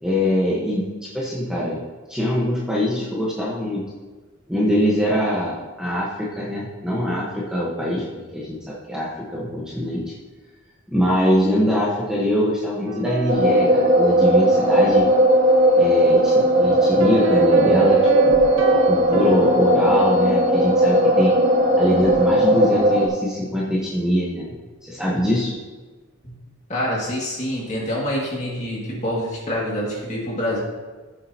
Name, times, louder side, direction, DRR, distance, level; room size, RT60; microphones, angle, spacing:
voice 1, 0.0-1.8 2.1-3.8 4.5-10.0 10.9-15.1 15.8-18.4 18.7-21.3 21.8-24.5 24.8-25.5, equal, 5° right, -6 dB, 1.2 m, -23 dB
sound 1, 12.9-14.5 17.0-20.2, right 6 dB, 85° right, 1.0 m, -26 dB
sound 2, 13.3-23.1, right 1 dB, 40° right, 1.0 m, -17 dB
voice 2, 26.7-30.6, equal, 35° left, -4 dB, 2.2 m, -26 dB
13.5 x 7.4 x 2.9 m, 1.3 s
head